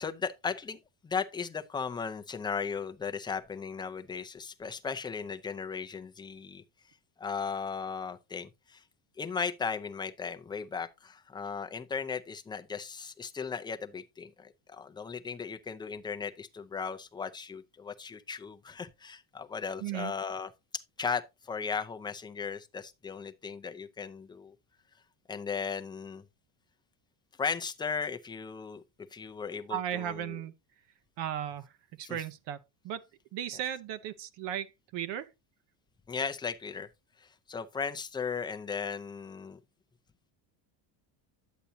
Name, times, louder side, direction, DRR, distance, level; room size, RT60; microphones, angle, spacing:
voice 1, 0.0-6.6 7.2-8.8 9.2-24.5 25.3-26.2 27.4-28.8 29.1-30.4 32.0-32.2 36.1-36.9 37.2-39.6, left 5 dB, 10° left, 0.5 m, -36 dB
voice 2, 19.8-20.1 29.7-30.5 31.2-31.7 32.0-33.1 33.3-35.3, right 10 dB, 60° right, 0.8 m, -36 dB
10.0 x 8.2 x 2.7 m
cardioid pair, 150°, 47 cm